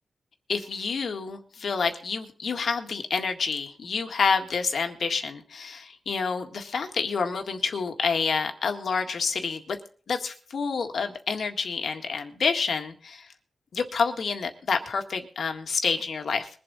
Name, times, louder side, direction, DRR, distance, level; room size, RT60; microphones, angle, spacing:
voice 1, 0.5-9.8 10.1-13.3 13.7-16.5, left 5 dB, 80° left, 5 dB, 1.8 m, -28 dB
22.0 x 7.8 x 4.1 m, 0.43 s
wide cardioid pair, 95°, 0 cm